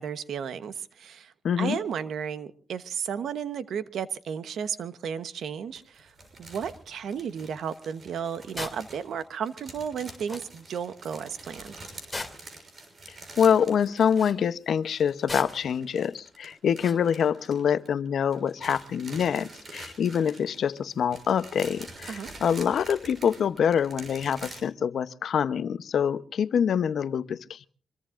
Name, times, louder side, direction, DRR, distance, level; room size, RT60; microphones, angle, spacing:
voice 1, 0.0-6.1 6.4-11.7 22.1-22.3, right 7 dB, 80° right, 1.1 m, -34 dB
voice 2, 1.4-1.8 13.1-27.7, left 8 dB, 75° left, 0.8 m, -25 dB
sound 1, 5.8-14.5 14.7-18.1 18.3-24.6, right 2 dB, 50° right, 6.3 m, -46 dB
sound 2, 8.6-8.8 10.0-10.1 10.3-10.5 12.1-12.6 14.0-14.4 15.3-15.7 16.8-17.0, left 2 dB, 15° left, 2.6 m, -37 dB
25.5 x 22.5 x 2.5 m
cardioid pair, 95°, 0 cm